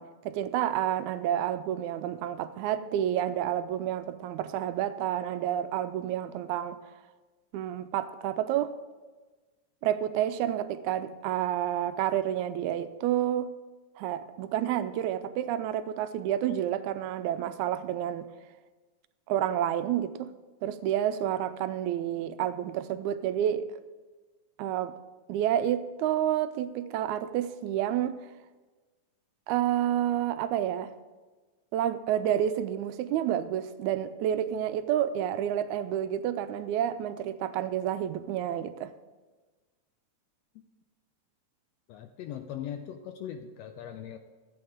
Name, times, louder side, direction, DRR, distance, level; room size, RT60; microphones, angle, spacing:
voice 1, 0.0-6.8 7.5-8.8 9.8-13.5 14.0-18.3 19.3-20.3 20.6-23.7 24.6-24.9 25.3-28.2 29.5-30.9 31.7-38.9, right 11 dB, 85° right, 1.9 m, -29 dB
voice 2, 41.9-44.2, left 9 dB, 80° left, 1.5 m, -40 dB
13.5 x 8.6 x 3.6 m
omnidirectional pair, 3.4 m